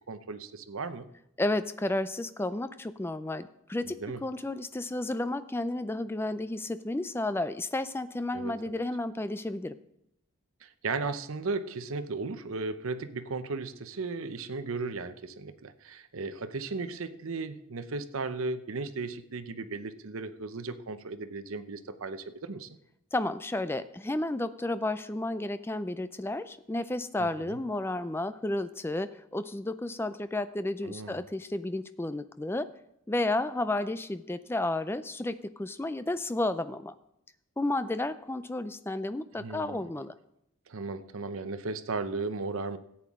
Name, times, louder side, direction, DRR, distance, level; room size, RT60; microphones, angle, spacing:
voice 1, 0.1-1.1 3.8-4.2 8.3-8.8 10.6-22.7 27.2-27.6 30.8-31.2 39.4-39.8 40.7-42.8, right 3 dB, 75° right, 11 dB, 0.7 m, -36 dB
voice 2, 1.4-9.7 23.1-32.7 33.1-36.9 37.6-40.1, left 2 dB, 10° left, 12 dB, 0.3 m, -32 dB
13.5 x 8.7 x 3.6 m, 0.80 s
head